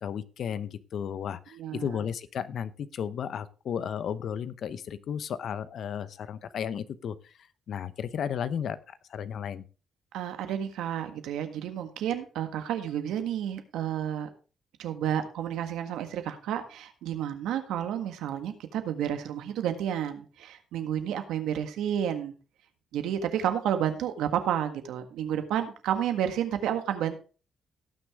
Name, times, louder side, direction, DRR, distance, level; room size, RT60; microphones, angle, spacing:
voice 1, 0.0-7.2 7.7-9.6, left 8 dB, 65° left, 15 dB, 0.8 m, -34 dB
voice 2, 1.5-1.9 10.1-14.3 14.8-22.3 22.9-27.2, right 10 dB, 85° right, 7 dB, 1.6 m, -31 dB
18.0 x 6.3 x 3.6 m, 0.35 s
cardioid pair, 90°, 0 cm